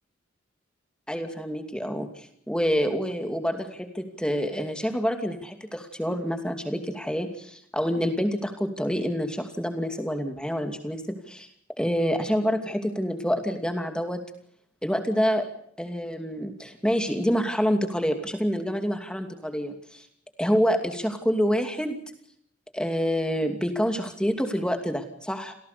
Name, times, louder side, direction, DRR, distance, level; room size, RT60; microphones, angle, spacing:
voice 1, 1.1-11.5 11.8-14.2 14.8-15.5 15.8-20.1 20.4-22.0 22.7-25.5, equal, 5° left, 6 dB, 2.6 m, -27 dB
28.0 x 17.5 x 6.9 m, 0.68 s
head